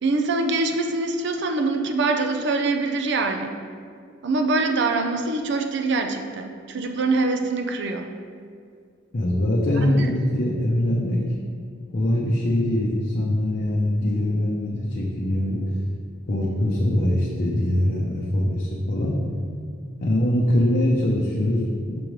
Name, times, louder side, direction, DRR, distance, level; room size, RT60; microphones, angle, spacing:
voice 1, 0.0-3.5 4.2-8.1 10.0-10.1, right 3 dB, 65° right, 5 dB, 0.5 m, -24 dB
voice 2, 9.1-11.2 11.9-15.8 16.3-19.2 20.0-22.0, left 1 dB, 50° left, -3 dB, 0.6 m, -22 dB
6.0 x 5.1 x 3.1 m, 2.2 s
head